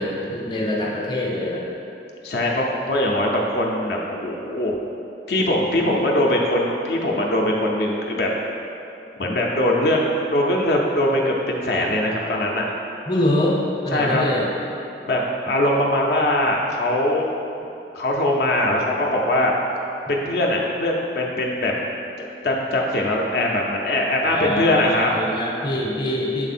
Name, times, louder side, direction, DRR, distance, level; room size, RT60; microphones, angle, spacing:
voice 1, 0.0-1.6 13.1-14.5 24.2-26.5, left 1 dB, 25° left, -3 dB, 0.6 m, -24 dB
voice 2, 2.2-4.8 5.3-8.3 9.2-12.7 13.9-14.2 15.1-17.3 17.9-19.5 20.1-21.7 22.2-25.1, left 1 dB, 65° left, -1 dB, 0.5 m, -21 dB
6.5 x 3.5 x 4.2 m, 2.8 s
head